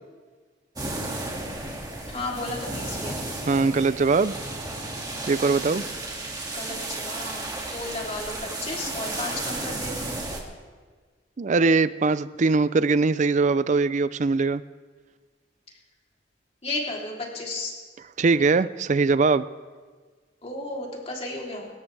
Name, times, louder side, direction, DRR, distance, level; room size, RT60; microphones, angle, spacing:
sound 1, 0.8-10.4, right 2 dB, 20° right, 2.2 m, -33 dB
voice 1, 2.1-3.2 6.5-7.4 7.7-10.2 16.6-17.7 20.4-21.7, left 2 dB, 35° left, -2 dB, 3.2 m, -33 dB
voice 2, 3.5-4.3 5.3-5.8 11.4-14.6 18.2-19.4, right 4 dB, 40° right, 16 dB, 0.4 m, -21 dB
25.5 x 13.5 x 3.4 m, 1.5 s
head